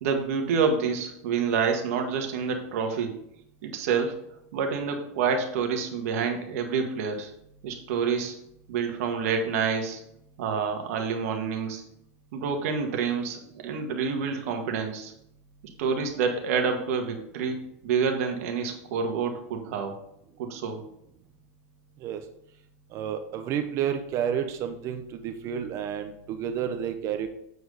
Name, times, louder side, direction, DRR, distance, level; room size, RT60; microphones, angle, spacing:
voice 1, 0.0-3.2 3.6-4.2 4.5-7.3 7.6-8.3 8.7-10.0 10.4-11.8 12.3-15.1 15.8-17.6 17.8-20.0 20.4-20.8, right 6 dB, 65° right, 4 dB, 1.8 m, -28 dB
voice 2, 22.9-27.3, right 9 dB, 35° right, 8 dB, 0.8 m, -30 dB
8.2 x 4.8 x 5.0 m, 0.76 s
supercardioid pair, 145°, 8 cm